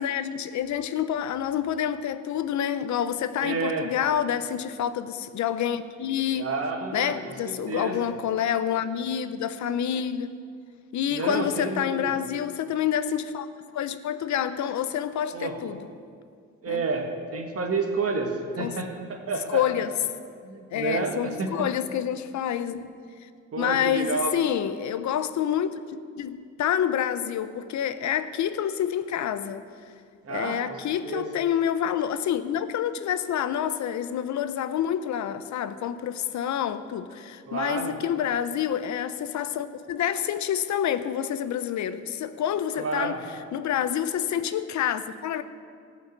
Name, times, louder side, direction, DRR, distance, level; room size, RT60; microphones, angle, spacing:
voice 1, 0.0-6.5 6.9-10.4 10.9-13.5 13.7-15.9 16.7-16.8 18.6-18.8 19.5-19.9 20.7-22.9 23.6-25.7 26.2-29.7 30.3-43.2 43.5-45.4, left 9 dB, 70° left, 12 dB, 0.8 m, -28 dB
voice 2, 3.4-3.9 6.4-8.1 11.1-12.0 15.3-15.6 16.6-19.6 20.4-21.7 23.5-24.4 30.2-31.3 37.5-38.0 42.8-43.2, right 4 dB, 50° right, 3 dB, 1.8 m, -30 dB
14.0 x 5.7 x 9.0 m, 2.2 s
cardioid pair, 90°, 30 cm